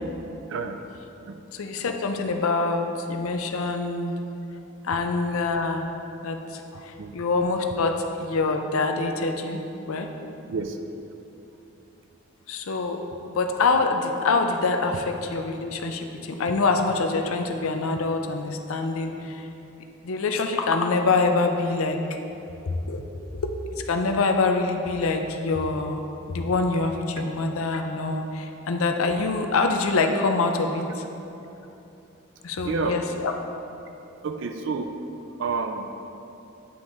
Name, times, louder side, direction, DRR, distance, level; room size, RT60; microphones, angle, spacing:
voice 1, 1.5-4.1 4.8-5.9 6.2-9.6 9.9-10.1 12.5-19.5 20.0-22.0 22.7-23.0 23.3-23.5 23.9-26.0 26.3-31.0 32.4-33.3, left 3 dB, 75° left, 5 dB, 0.5 m, -25 dB
voice 2, 32.6-33.0 34.2-34.9 35.4-35.9, right 4 dB, 55° right, 6 dB, 0.3 m, -29 dB
9.2 x 3.6 x 3.9 m, 2.9 s
head